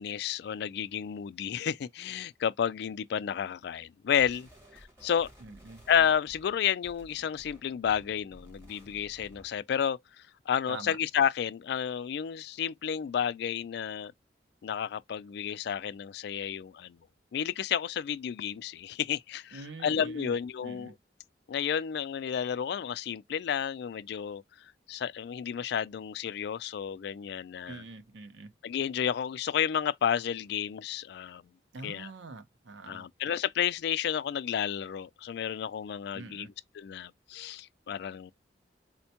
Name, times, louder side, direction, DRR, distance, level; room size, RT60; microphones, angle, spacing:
voice 1, 0.0-4.5 5.0-5.3 5.9-10.0 10.5-14.1 14.6-17.0 17.3-20.9 21.5-24.4 24.9-27.8 28.6-31.4 31.8-32.1 32.9-38.3, left 8 dB, 65° left, 0.3 m, -31 dB
sound 1, 4.2-9.6, equal, 15° right, 1.4 m, -55 dB
voice 2, 5.4-5.8 10.7-11.0 19.5-20.3 20.6-20.9 27.7-28.5 31.7-33.1 36.1-36.5, right 3 dB, 90° right, 0.6 m, -44 dB
4.3 x 2.1 x 2.8 m
head